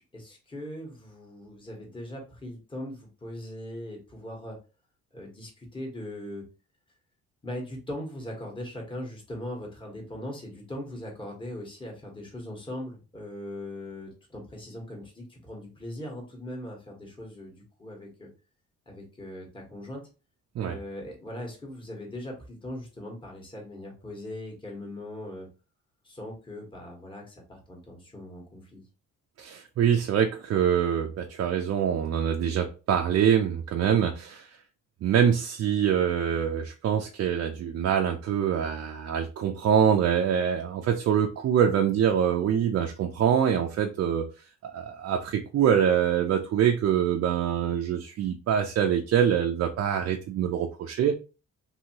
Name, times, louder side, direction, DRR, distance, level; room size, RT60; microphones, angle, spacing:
voice 1, 0.1-4.6 5.1-6.4 7.4-18.3 18.9-20.0 20.6-25.5 26.0-28.8, left 1 dB, 15° left, 1.2 m, -40 dB
voice 2, 29.4-34.6 35.0-44.3 44.6-51.2, right 8 dB, 55° right, 0.4 m, -25 dB
2.7 x 2.7 x 2.9 m
cardioid pair, 90°, 30 cm